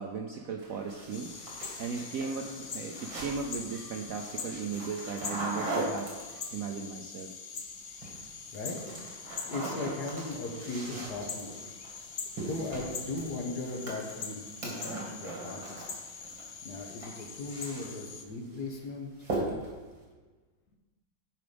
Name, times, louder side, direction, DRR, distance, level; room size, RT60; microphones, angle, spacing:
voice 1, 0.0-1.4 1.7-7.3, right 5 dB, 70° right, 3 dB, 0.8 m, -37 dB
sound 1, 0.6-6.7 7.8-8.2 8.5-16.4 16.7-18.2 18.5-18.8 19.2-19.8, right 2 dB, 85° right, 3.0 m, -40 dB
sound 2, 1.1-18.2, left 5 dB, 80° left, 0.5 m, -43 dB
voice 2, 9.4-11.5 12.4-15.9 16.6-19.1, left 2 dB, 60° left, 2 dB, 1.7 m, -38 dB
11.0 x 4.8 x 5.1 m, 1.3 s
omnidirectional pair, 2.1 m